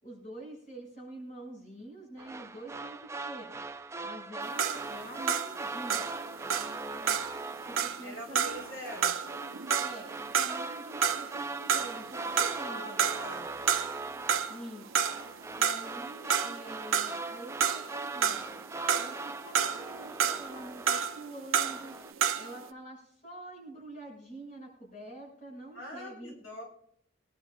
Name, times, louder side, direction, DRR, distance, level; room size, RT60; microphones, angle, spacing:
voice 1, 0.0-3.7 4.0-7.2 7.6-8.6 9.8-13.1 14.5-14.9 15.5-18.6 18.9-22.0 22.3-26.3, right 1 dB, 40° left, -2 dB, 6.6 m, -46 dB
sound 1, 2.2-21.3 21.6-22.1, right 3 dB, 15° right, 0.4 m, -40 dB
sound 2, 4.4-11.4 11.7-12.7 13.0-14.0 14.3-22.6, right 7 dB, 80° right, 0.8 m, -30 dB
voice 2, 8.0-9.2 12.6-13.5 25.7-26.6, equal, 85° left, -2 dB, 5.0 m, -43 dB
23.0 x 11.5 x 2.5 m, 0.65 s
head